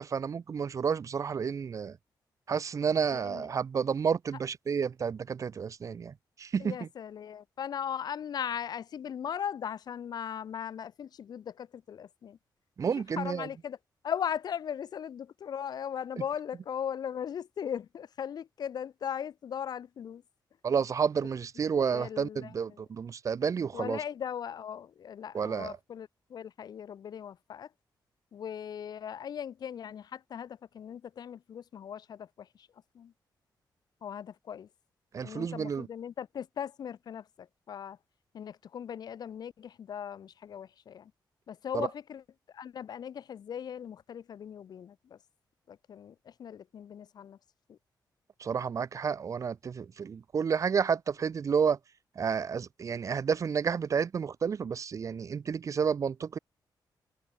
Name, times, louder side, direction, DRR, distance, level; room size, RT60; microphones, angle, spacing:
voice 1, 0.0-2.0 2.5-6.1 6.4-6.9 12.8-13.5 16.2-16.3 20.6-24.0 25.3-25.8 35.1-35.9 41.7-41.9 48.4-51.8 52.2-56.4, right 6 dB, 45° right, 1.4 m, -30 dB
voice 2, 6.6-11.4 11.9-12.3 13.2-13.8 14.0-20.2 21.9-22.3 23.7-26.1 26.3-27.7 28.3-30.0 30.3-30.5 30.8-32.0 34.0-34.7 35.2-37.2 37.7-38.0 38.4-39.5 39.9-40.9 41.6-42.2 42.6-44.9 45.9-46.1 46.4-47.4, left 8 dB, 60° left, 1.7 m, -38 dB
wide cardioid pair, 165°, 8 cm